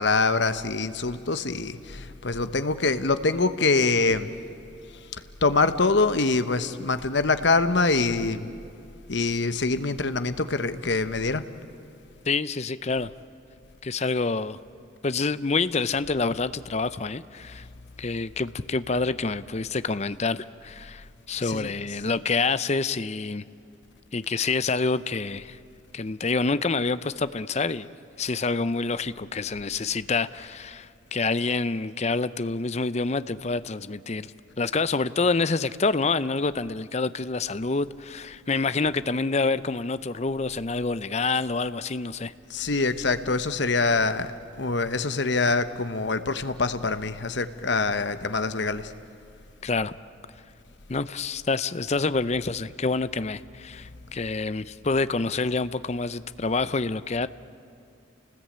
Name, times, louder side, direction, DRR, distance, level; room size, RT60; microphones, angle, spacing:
voice 1, 0.0-4.3 4.9-8.5 9.1-11.4 21.4-21.7 42.5-44.3 44.6-48.9, left 3 dB, 60° left, 1.1 m, -24 dB
voice 2, 12.3-13.1 13.8-14.6 15.0-17.6 18.0-23.4 24.1-25.6 25.9-27.9 28.2-34.3 34.6-42.3 49.6-49.9 50.9-57.3, left 3 dB, 35° left, 0.6 m, -27 dB
29.5 x 19.5 x 8.8 m
head